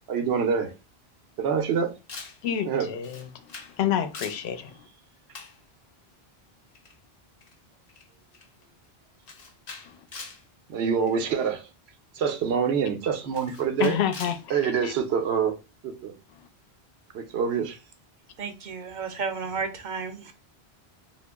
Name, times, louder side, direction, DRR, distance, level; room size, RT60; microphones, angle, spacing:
voice 1, 0.1-0.7 1.4-1.9 2.7-2.9 10.7-11.6 12.2-14.0 14.5-15.5 15.8-16.1 17.1-17.8, right 6 dB, 80° right, 0.9 m, -25 dB
Camera, 2.1-2.4 3.0-3.8 4.0-4.5 5.3-5.6 6.8-7.0 7.4-7.5 7.9-8.1 8.3-8.6 9.3-10.4 11.1-11.3 12.3-12.4 13.3-14.4, left 4 dB, 50° left, 0.6 m, -42 dB
voice 2, 2.4-3.4 3.8-4.8 9.9-10.0 13.8-14.9, left 10 dB, 85° left, 0.8 m, -28 dB
voice 3, 18.4-20.3, right 5 dB, 55° right, 0.6 m, -32 dB
2.8 x 2.4 x 3.4 m
omnidirectional pair, 1.1 m